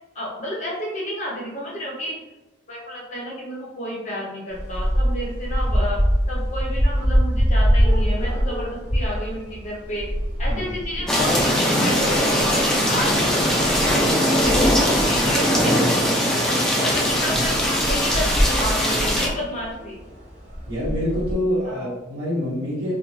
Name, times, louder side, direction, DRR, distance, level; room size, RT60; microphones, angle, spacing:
voice 1, 0.1-2.1 2.7-6.0 6.3-10.1 10.4-16.4 16.8-20.0 21.6-21.9, left 1 dB, 40° left, -4 dB, 0.7 m, -31 dB
sound 1, 4.5-21.3, equal, 35° right, 0.9 m, -25 dB
sound 2, 11.1-19.3, equal, 5° left, 0.3 m, -20 dB
voice 2, 20.7-22.9, left 1 dB, 60° right, -11 dB, 1.0 m, -26 dB
2.6 x 2.2 x 3.1 m, 1.1 s
head